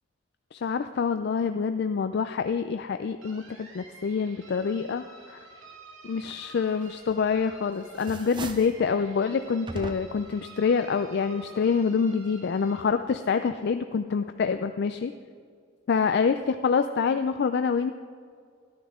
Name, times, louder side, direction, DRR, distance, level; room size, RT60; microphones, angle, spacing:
voice 1, 0.5-5.4 6.0-15.1 15.9-17.9, left 5 dB, 50° left, 8 dB, 0.3 m, -26 dB
sound 1, 3.2-12.8, right 2 dB, 70° right, 1.8 m, -50 dB
sound 2, 7.1-7.5 7.9-8.8 9.7-10.3, right 3 dB, 20° right, 0.4 m, -39 dB
13.5 x 11.5 x 3.6 m, 2.1 s
head